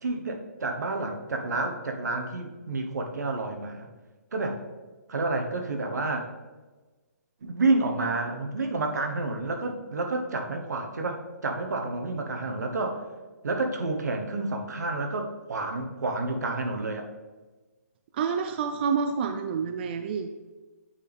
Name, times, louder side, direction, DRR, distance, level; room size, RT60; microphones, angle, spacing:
voice 1, 0.0-3.9 4.3-4.6 5.1-6.3 7.4-13.0 13.4-17.1, right 3 dB, 80° right, 4 dB, 1.1 m, -29 dB
voice 2, 18.1-20.3, right 6 dB, 35° right, 8 dB, 0.3 m, -28 dB
8.8 x 4.1 x 3.4 m, 1.2 s
hypercardioid pair, 155°, 9 cm